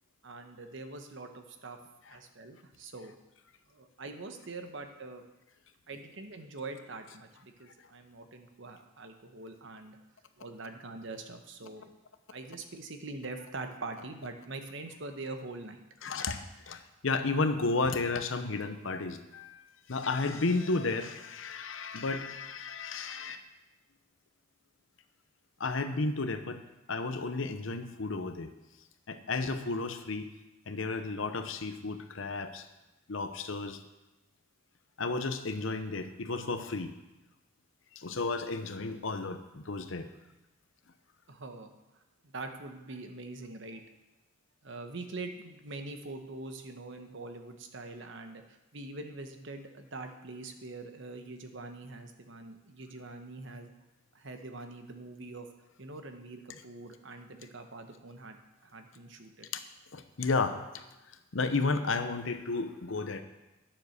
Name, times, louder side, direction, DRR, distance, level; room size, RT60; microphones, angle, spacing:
voice 1, 0.2-1.8 2.1-3.1 3.7-5.2 5.9-10.0 10.4-11.9 12.3-15.8 41.3-41.8 42.2-43.8 44.6-48.4 48.7-53.7 54.1-55.5 55.8-59.5, right 3 dB, 65° right, 6 dB, 1.1 m, -43 dB
voice 2, 16.0-23.4 25.6-26.6 26.9-28.5 29.1-30.3 30.7-32.6 33.1-33.8 35.0-36.9 38.0-40.1 59.5-59.6 59.9-60.8 61.3-63.2, left 3 dB, 70° left, 9 dB, 0.8 m, -33 dB
9.7 x 7.4 x 6.5 m, 1.0 s
head